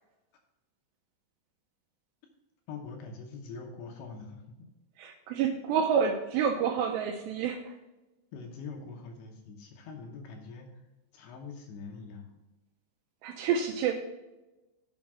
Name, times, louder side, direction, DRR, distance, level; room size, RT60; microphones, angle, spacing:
voice 1, 2.7-4.7 8.3-10.8 11.1-12.4, left 4 dB, 75° left, 2 dB, 2.7 m, -44 dB
voice 2, 5.0-7.8 13.2-13.9, right 7 dB, 85° right, 4 dB, 2.5 m, -28 dB
8.1 x 4.7 x 6.0 m, 1.1 s
omnidirectional pair, 5.5 m